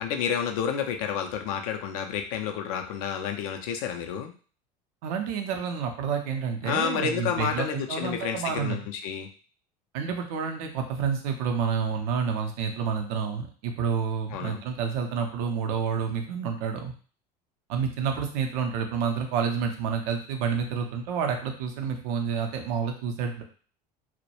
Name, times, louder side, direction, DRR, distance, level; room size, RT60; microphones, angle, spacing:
voice 1, 0.0-4.3 6.6-9.3 14.3-14.6, left 7 dB, 60° left, 5 dB, 0.4 m, -30 dB
voice 2, 5.0-8.8 9.9-16.9 17.7-23.4, right 6 dB, 55° right, 4 dB, 0.6 m, -29 dB
2.2 x 2.1 x 2.9 m, 0.40 s
figure-of-eight pair, 70°, 21 cm